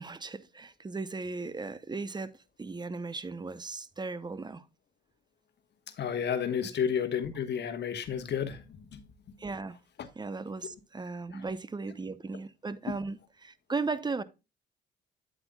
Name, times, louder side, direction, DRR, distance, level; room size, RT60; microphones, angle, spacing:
voice 1, 0.0-2.3 2.6-4.6 9.4-9.8 10.2-14.2, right 4 dB, 20° right, 0.7 m, -36 dB
voice 2, 6.0-9.0 10.0-10.1 11.3-11.4, left 7 dB, 60° left, 1.2 m, -32 dB
9.1 x 7.9 x 2.2 m
cardioid pair, 90°, 20 cm